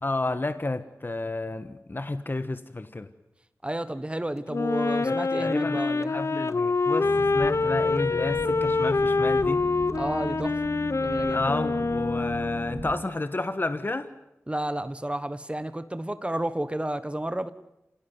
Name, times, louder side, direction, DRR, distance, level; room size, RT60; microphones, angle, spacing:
voice 1, 0.0-3.1 5.0-5.8 6.1-9.6 11.3-14.1, left 2 dB, 40° left, 10 dB, 1.3 m, -31 dB
voice 2, 3.6-6.2 9.9-10.6 11.0-11.4 14.5-17.5, right 1 dB, 20° right, 12 dB, 1.2 m, -31 dB
Wind instrument woodwind instrument, 4.5-12.9, left 3 dB, 60° left, 0.8 m, -26 dB
Boat Water vehicle, 7.0-13.0, right 2 dB, 65° right, 2.5 m, -37 dB
27.0 x 17.0 x 9.4 m, 0.89 s
cardioid pair, 45°, 5 cm